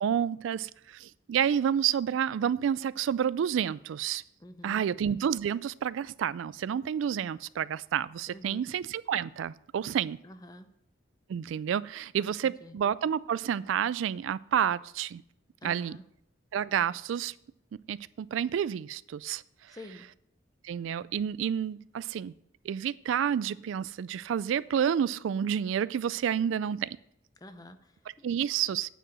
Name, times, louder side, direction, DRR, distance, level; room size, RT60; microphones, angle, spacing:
voice 1, 0.0-4.2 4.6-10.2 11.3-15.2 15.6-16.0 16.5-17.3 17.9-19.4 20.6-22.3 22.6-26.9 28.2-28.9, right 8 dB, 80° right, 0.3 m, -29 dB
voice 2, 4.4-4.9 8.3-8.7 10.2-10.7 12.2-12.8 15.6-16.0 19.7-20.0 27.4-28.2, left 1 dB, 20° left, 0.6 m, -48 dB
8.9 x 4.9 x 7.4 m
head